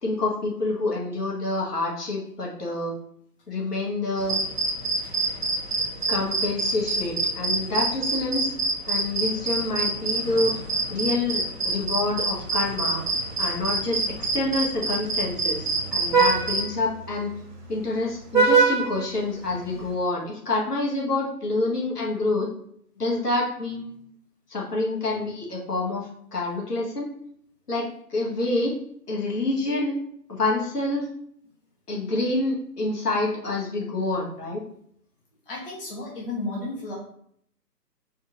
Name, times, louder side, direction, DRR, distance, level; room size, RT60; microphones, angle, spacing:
voice 1, 0.0-2.9 3.5-4.4 6.1-8.5 8.9-10.5 10.9-13.0 13.4-17.3 17.7-22.5 23.0-24.1 24.5-27.1 27.7-28.8 29.1-29.9 30.3-31.1 31.9-34.6, left 2 dB, 70° left, -3 dB, 1.5 m, -27 dB
sound 1, 4.2-16.7, right 2 dB, 40° right, 0.7 m, -27 dB
Vehicle horn car horn honking, 11.8-19.9, right 4 dB, 70° right, 1.1 m, -27 dB
voice 2, 35.5-36.9, left 2 dB, 35° left, -4 dB, 0.9 m, -33 dB
4.3 x 2.5 x 4.5 m, 0.67 s
figure-of-eight pair, 145°, 49 cm